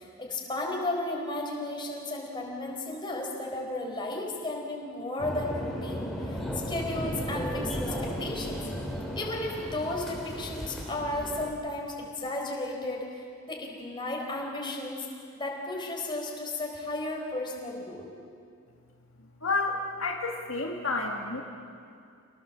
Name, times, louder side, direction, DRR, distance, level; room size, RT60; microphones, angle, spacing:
voice 1, 0.0-8.6 9.1-15.1 15.4-18.1, left 2 dB, 20° left, -1 dB, 4.4 m, -34 dB
sound 1, 5.2-11.5, equal, ahead, 3.2 m, -35 dB
voice 2, 19.4-21.4, left 3 dB, 70° left, 0 dB, 1.9 m, -30 dB
27.5 x 19.0 x 7.6 m, 2.4 s
head